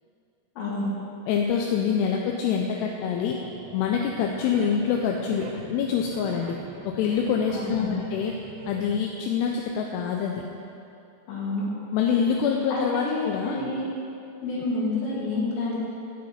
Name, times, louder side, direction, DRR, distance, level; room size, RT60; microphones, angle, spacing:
voice 1, 0.6-0.9 7.5-8.0 11.3-11.6 12.7-13.9 14.4-15.8, left 3 dB, 65° left, -5 dB, 3.1 m, -29 dB
voice 2, 1.3-3.4 3.7-6.6 6.8-8.3 8.7-10.4 11.9-13.6, left 7 dB, 85° left, 0 dB, 2.5 m, -25 dB
sound 1, 3.4-9.1, right 8 dB, 85° right, 2.8 m, -44 dB
8.8 x 7.3 x 4.2 m, 2.7 s
omnidirectional pair, 5.0 m